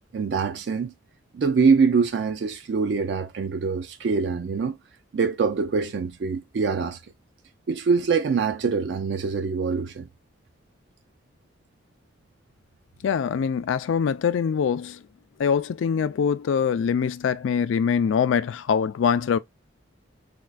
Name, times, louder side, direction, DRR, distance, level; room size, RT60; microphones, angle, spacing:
voice 1, 0.1-0.9 1.3-4.8 5.1-7.0 7.7-10.1, right 5 dB, 60° right, 0.3 m, -24 dB
voice 2, 13.0-15.0 15.4-19.4, left 7 dB, 80° left, 0.3 m, -23 dB
4.3 x 2.2 x 2.4 m
head